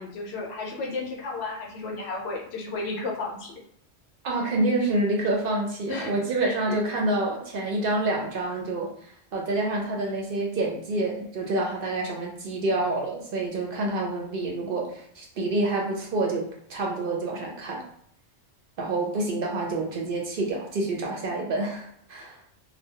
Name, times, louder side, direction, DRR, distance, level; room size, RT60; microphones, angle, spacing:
voice 1, 0.0-3.6 5.9-6.1 6.4-6.8 22.2-22.3, left 3 dB, 70° left, 0 dB, 0.8 m, -33 dB
voice 2, 4.2-17.8 18.8-22.4, right 2 dB, 60° right, -1 dB, 0.6 m, -28 dB
2.2 x 2.1 x 2.7 m, 0.66 s
omnidirectional pair, 1.2 m